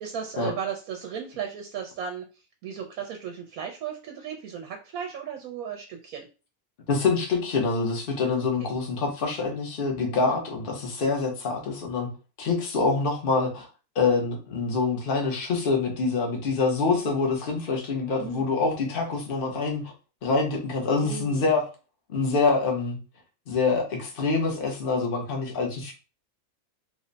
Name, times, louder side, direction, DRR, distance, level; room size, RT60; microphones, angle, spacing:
voice 1, 0.0-2.3 2.6-6.3 8.2-8.5 10.3-10.4 18.2-18.5 20.9-21.4, right 8 dB, 90° right, 3 dB, 1.0 m, -35 dB
voice 2, 6.9-12.1 12.4-13.7 13.9-19.8 20.2-21.6 22.1-23.0 23.5-25.9, left 4 dB, 45° left, 1 dB, 1.0 m, -25 dB
3.3 x 2.1 x 3.8 m, 0.33 s
omnidirectional pair, 1.5 m